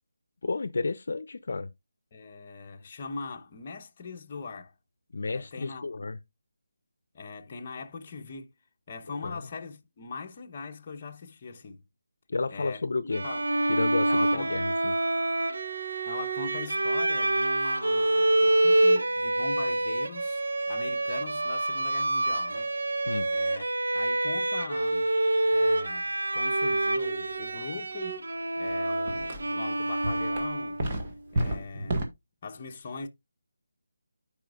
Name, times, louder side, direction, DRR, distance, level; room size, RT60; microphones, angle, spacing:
voice 1, 0.4-1.7 5.1-6.2 9.1-9.4 12.3-13.2 13.7-15.0 23.0-23.3, left 3 dB, 60° left, 0.6 m, -31 dB
voice 2, 2.1-4.7 5.2-6.0 7.1-8.5 8.9-11.8 12.5-12.8 13.2-13.4 14.1-14.6 16.0-22.7 23.3-23.7 23.9-25.1 25.5-28.2 28.6-30.8 31.3-32.0 32.4-33.1, left 4 dB, 30° left, 0.9 m, -41 dB
Bowed string instrument, 13.1-30.9, right 1 dB, 75° right, 1.1 m, -27 dB
sound 1, 28.6-28.8 29.1-29.6 30.0-32.0, right 1 dB, 25° right, 1.6 m, -31 dB
14.5 x 5.0 x 2.4 m
figure-of-eight pair, 170°, 0 cm